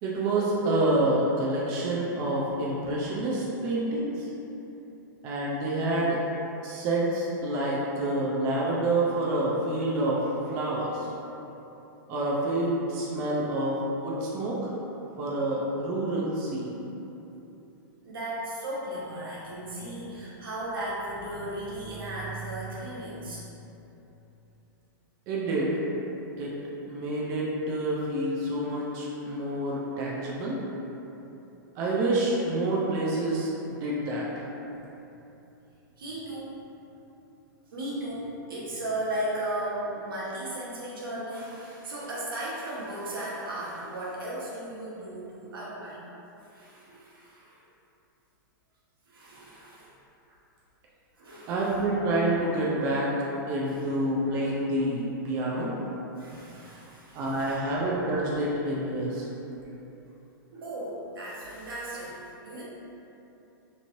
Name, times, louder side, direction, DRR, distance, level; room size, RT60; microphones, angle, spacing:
voice 1, 0.0-4.3 5.2-6.2 6.6-11.1 12.1-14.6 15.2-16.8 25.3-25.8 26.4-26.5 26.9-30.6 31.8-34.5 51.5-53.1 53.5-55.7 57.1-59.3, right 1 dB, 30° right, -5 dB, 0.4 m, -28 dB
voice 2, 18.0-23.5 36.0-36.6 37.7-46.0 46.4-47.6 49.1-49.9 50.3-50.4 51.2-51.9 53.6-53.9 56.2-57.7 59.6-59.7 60.5-62.6, right 1 dB, 85° right, -6 dB, 0.9 m, -36 dB
3.1 x 2.6 x 2.6 m, 3.0 s
hypercardioid pair, 150°, 11 cm